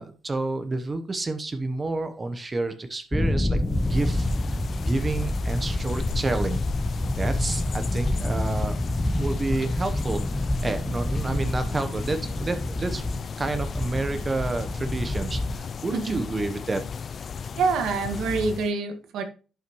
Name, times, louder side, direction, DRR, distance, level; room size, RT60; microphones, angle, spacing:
voice 1, 0.0-3.6 3.9-4.6 4.9-6.6 7.2-8.8 9.2-13.1 13.4-17.1, right 2 dB, 25° right, 8 dB, 1.0 m, -29 dB
sound 1, 3.1-15.6, left 1 dB, 10° left, 0.8 m, -28 dB
sound 2, 3.6-18.7, left 6 dB, 50° left, 0.4 m, -36 dB
voice 2, 15.9-16.2 17.6-19.2, right 4 dB, 80° right, 6 dB, 1.7 m, -26 dB
11.5 x 5.7 x 3.1 m, 0.36 s
cardioid pair, 90°, 0 cm